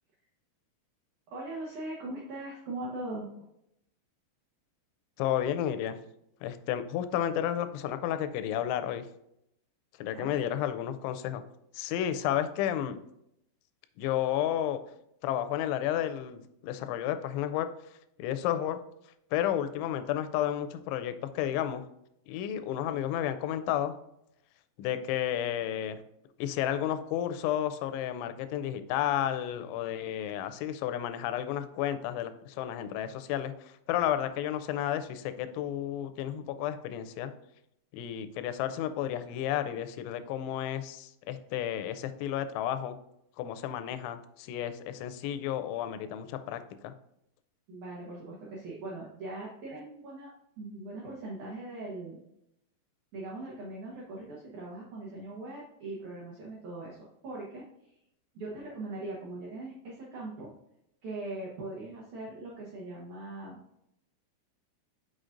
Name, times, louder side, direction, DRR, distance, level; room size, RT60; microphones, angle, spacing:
voice 1, 1.3-3.3 10.1-10.5 47.7-50.3 50.6-52.2 53.1-57.0 57.2-58.0 58.3-60.5 61.0-63.6, right 2 dB, 80° right, -5 dB, 1.7 m, -40 dB
voice 2, 5.2-6.0 6.4-9.0 10.0-11.4 11.7-13.0 14.0-14.8 15.2-17.7 18.2-18.8 19.3-21.9 22.3-23.9 24.8-26.0 26.4-37.3 37.9-43.0 43.4-46.9, left 11 dB, 90° left, 10 dB, 3.0 m, -32 dB
6.4 x 6.1 x 2.5 m, 0.79 s
omnidirectional pair, 5.3 m